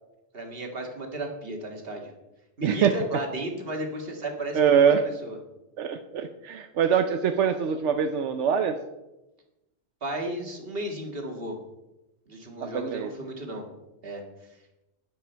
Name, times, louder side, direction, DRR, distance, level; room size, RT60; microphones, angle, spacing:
voice 1, 0.3-2.1 2.6-4.6 5.2-5.4 10.0-11.6 12.3-13.7 14.0-14.2, right 1 dB, 55° right, 2 dB, 2.2 m, -34 dB
voice 2, 2.6-2.9 4.5-5.1 5.8-8.8 12.6-13.1, right 7 dB, 85° right, 7 dB, 1.1 m, -23 dB
12.0 x 10.5 x 4.5 m, 0.98 s
omnidirectional pair, 1.2 m